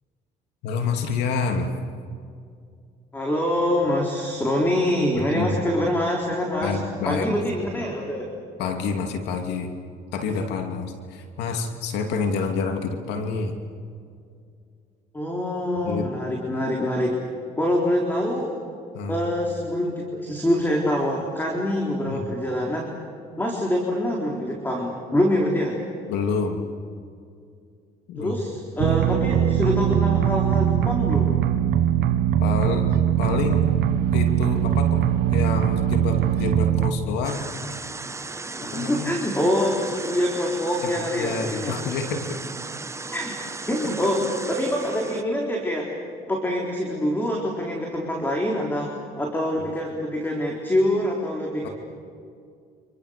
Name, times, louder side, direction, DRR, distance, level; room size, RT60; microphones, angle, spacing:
voice 1, 0.6-1.7 5.1-5.6 6.6-7.3 8.6-9.7 10.1-13.5 15.8-16.1 18.9-19.3 22.0-22.2 26.1-26.6 28.1-28.4 32.4-32.9 33.2-33.7 34.1-35.0 35.3-37.5 38.6-39.1 40.8-42.4 51.6-51.7, left 4 dB, 85° left, 5 dB, 2.7 m, -28 dB
voice 2, 3.1-6.8 7.1-8.3 15.1-17.2 17.6-18.5 19.1-22.9 23.4-25.8 28.2-31.5 38.5-41.8 43.1-43.4 43.7-45.9 46.2-51.7, left 1 dB, 10° left, -1 dB, 4.1 m, -25 dB
sound 1, 28.8-36.9, right 10 dB, 80° right, 1.2 m, -21 dB
sound 2, 37.2-45.2, right 3 dB, 15° right, 1.0 m, -36 dB
29.5 x 27.0 x 6.7 m, 2.3 s
cardioid pair, 110°, 17 cm